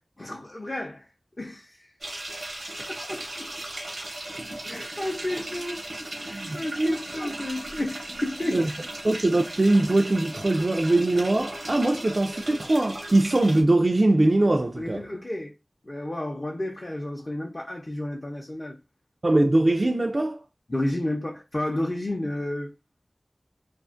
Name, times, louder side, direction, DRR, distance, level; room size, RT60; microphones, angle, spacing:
voice 1, 0.2-1.1 1.4-1.9 2.9-3.5 4.6-5.9 6.2-8.7 14.8-15.5 15.8-18.8 20.7-22.7, left 1 dB, 45° left, 0.6 m, -31 dB
sound 1, 2.0-13.6, right 1 dB, 85° right, 0.8 m, -37 dB
voice 2, 6.3-7.0 7.2-7.3 8.5-8.7 9.0-15.1 19.2-20.4, right 2 dB, 50° right, 0.3 m, -22 dB
2.4 x 2.3 x 2.4 m
wide cardioid pair, 60°, 0 cm